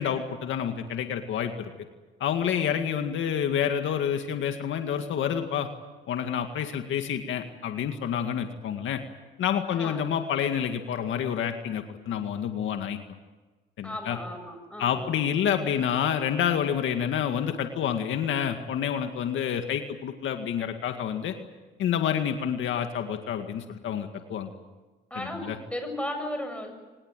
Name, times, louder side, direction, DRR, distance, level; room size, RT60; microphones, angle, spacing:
voice 1, 0.0-1.7 2.2-5.7 6.1-9.0 9.4-13.0 13.8-14.2 14.8-21.3 21.8-24.5 25.1-25.6, left 8 dB, 75° left, 6 dB, 2.1 m, -28 dB
voice 2, 13.8-15.0 25.1-26.7, left 1 dB, 5° left, 5 dB, 7.2 m, -35 dB
25.0 x 20.0 x 9.1 m, 1.2 s
cardioid pair, 90°, 20 cm